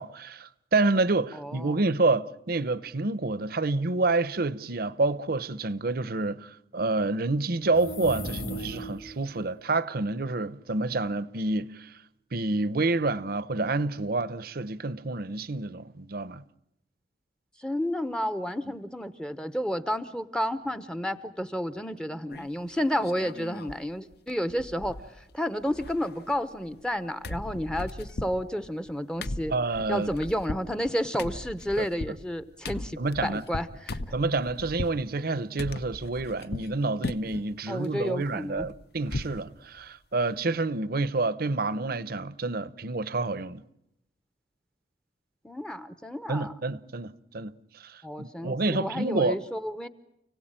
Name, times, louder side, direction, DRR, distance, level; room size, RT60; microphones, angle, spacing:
voice 1, 0.0-11.9 12.3-16.4 29.5-30.1 31.8-31.9 33.0-33.4 34.1-43.6 46.3-49.4, right 3 dB, 55° right, 0.9 m, -28 dB
voice 2, 1.3-1.8 17.6-25.0 25.3-29.5 29.9-34.0 37.7-38.7 45.4-46.5 48.0-49.9, equal, 5° left, 0.8 m, -31 dB
sound 1, 7.7-9.2, equal, 90° left, 3.0 m, -36 dB
sound 2, 22.3-22.7 23.0-23.8 24.1-24.2 24.5-25.3 25.6-27.0 27.2-35.0 35.6-36.7 37.0-37.5 37.8-39.4 39.8-39.9 40.2-40.4, left 2 dB, 60° left, 0.9 m, -38 dB
29.5 x 17.5 x 9.0 m
head